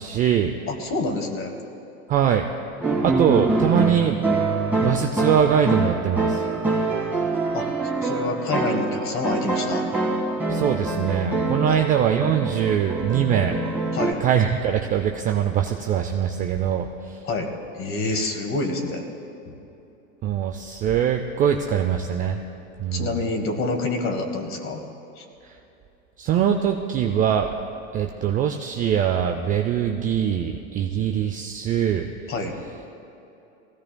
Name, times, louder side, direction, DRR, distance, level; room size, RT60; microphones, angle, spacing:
voice 1, 0.0-0.5 2.1-2.5 3.0-4.2 4.8-6.4 10.5-13.6 14.2-17.2 18.1-18.3 20.2-22.4 22.8-23.2 26.2-27.5 27.9-32.1, right 9 dB, 20° right, 4 dB, 0.4 m, -22 dB
voice 2, 0.7-1.5 7.5-7.7 8.0-9.8 11.7-11.8 13.9-14.2 17.2-19.0 19.5-19.6 22.9-24.8 25.2-25.3 32.3-32.6, left 3 dB, 30° left, 4 dB, 1.8 m, -27 dB
sound 1, 2.8-14.1, right 2 dB, 5° right, 1.8 m, -25 dB
20.0 x 16.5 x 2.2 m, 2.9 s
hypercardioid pair, 115°, 40 cm